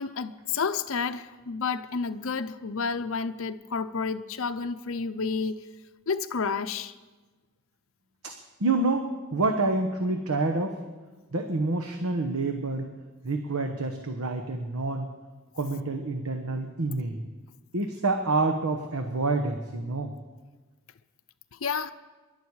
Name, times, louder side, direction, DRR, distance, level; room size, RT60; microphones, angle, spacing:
voice 1, 0.0-5.7 6.1-6.9 21.6-21.9, left 5 dB, 65° left, 0.6 m, -30 dB
voice 2, 8.6-10.8 11.3-12.9 13.2-15.1 15.5-17.2 17.7-20.1, right 3 dB, 80° right, 1.1 m, -28 dB
23.5 x 11.5 x 4.8 m
head